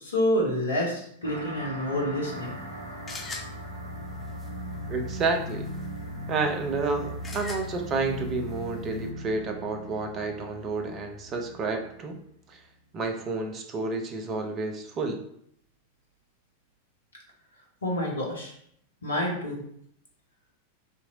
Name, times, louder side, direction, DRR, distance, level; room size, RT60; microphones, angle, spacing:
voice 1, 0.0-2.5 17.8-18.5 19.0-19.6, left 1 dB, 75° left, -2 dB, 0.9 m, -28 dB
sound 1, 1.2-12.2, equal, 90° left, 0.6 m, -39 dB
sound 2, 2.3-9.1, left 3 dB, 15° left, 0.7 m, -44 dB
voice 2, 4.9-5.7 6.3-12.2 12.5-12.6 12.9-15.2, right 3 dB, 30° right, 4 dB, 0.6 m, -30 dB
2.9 x 2.6 x 3.9 m, 0.68 s
figure-of-eight pair, 90°, 0 cm